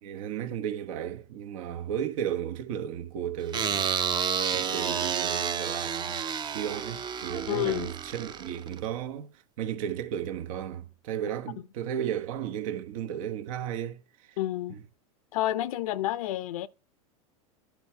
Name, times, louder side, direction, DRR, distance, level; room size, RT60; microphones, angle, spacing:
voice 1, 0.0-4.2 4.5-6.2 6.5-9.3 9.6-14.3 14.7-14.8, right 9 dB, 70° right, 1.2 m, -34 dB
sound 1, 3.5-8.8, right 7 dB, 25° right, 0.6 m, -30 dB
voice 2, 7.5-7.9 14.4-14.8 15.3-16.7, left 14 dB, 75° left, 0.6 m, -29 dB
11.0 x 4.7 x 4.6 m
supercardioid pair, 120°, 18 cm